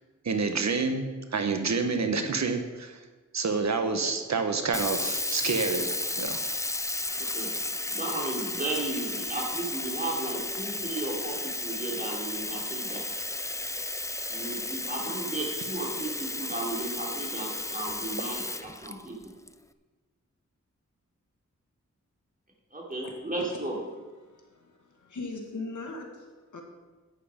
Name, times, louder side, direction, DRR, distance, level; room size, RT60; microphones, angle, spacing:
voice 1, 0.2-1.0 1.3-3.0 3.3-5.9 6.1-6.4, right 4 dB, 65° right, 6 dB, 1.1 m, -28 dB
Sink (filling or washing), 4.7-19.5, left 2 dB, 10° left, 0.5 m, -33 dB
voice 2, 7.1-7.6 7.9-13.0 14.3-19.3 22.7-23.8, right 2 dB, 30° right, -2 dB, 3.2 m, -34 dB
voice 3, 24.2-26.6, left 3 dB, 80° left, 2 dB, 2.0 m, -40 dB
11.0 x 9.4 x 5.1 m, 1.3 s
wide cardioid pair, 95°, 30 cm